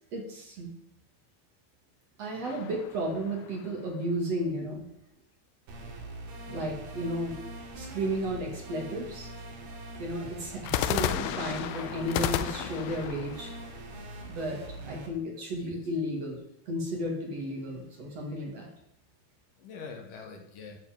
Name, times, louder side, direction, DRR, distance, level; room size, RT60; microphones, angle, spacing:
voice 1, 0.1-0.7 2.2-4.9 6.5-7.4 7.7-9.3 10.0-13.5 14.2-16.4 16.7-18.7, right 1 dB, 45° right, 0 dB, 3.0 m, -33 dB
sound 1, 2.4-3.9 10.6-14.6, left 11 dB, 85° left, 2.6 m, -33 dB
sound 2, 5.7-15.1, right 1 dB, 75° right, 4.0 m, -43 dB
voice 2, 6.5-6.8 15.5-15.8 19.6-20.8, left 5 dB, 65° left, 4 dB, 2.7 m, -45 dB
13.0 x 8.5 x 5.2 m, 0.79 s
omnidirectional pair, 4.4 m